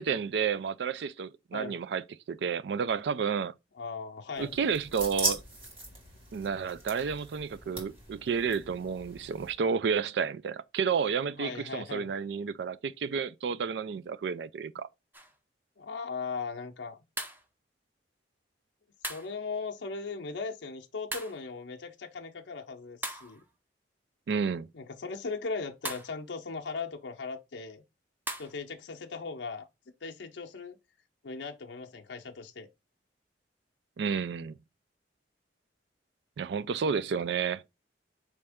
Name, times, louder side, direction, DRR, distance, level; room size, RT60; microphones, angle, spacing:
voice 1, 0.0-3.5 4.4-5.4 6.3-14.9 24.3-24.7 34.0-34.6 36.4-37.6, right 6 dB, 70° right, 0.3 m, -31 dB
voice 2, 3.8-4.6 11.4-12.1 15.8-17.0 19.0-23.4 24.7-27.8 28.4-29.7 30.0-30.8 31.2-32.7, left 4 dB, 85° left, 0.6 m, -38 dB
sound 1, 4.3-9.5, right 2 dB, 30° right, 1.9 m, -39 dB
sound 2, 15.1-15.4 17.2-17.5 19.0-19.4 21.1-21.5 23.0-23.5 25.8-26.2 28.3-28.6, right 1 dB, 10° right, 0.5 m, -38 dB
4.2 x 3.3 x 3.5 m
head